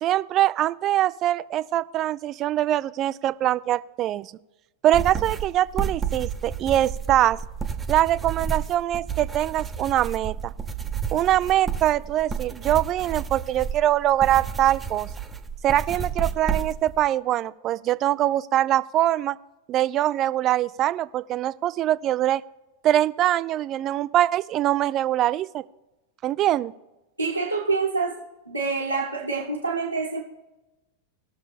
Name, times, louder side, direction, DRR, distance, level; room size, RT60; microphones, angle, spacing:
voice 1, 0.0-4.3 4.8-7.4 7.9-10.5 11.1-15.1 15.6-19.4 19.7-22.4 22.8-25.6 26.2-26.7, right 13 dB, 35° right, 17 dB, 0.3 m, -23 dB
sound 1, 4.9-17.0, right 7 dB, 15° right, 0.8 m, -31 dB
voice 2, 27.2-28.2 28.5-30.2, right 4 dB, 90° right, -6 dB, 1.3 m, -26 dB
19.5 x 6.6 x 3.3 m, 1.0 s
figure-of-eight pair, 90°, 0 cm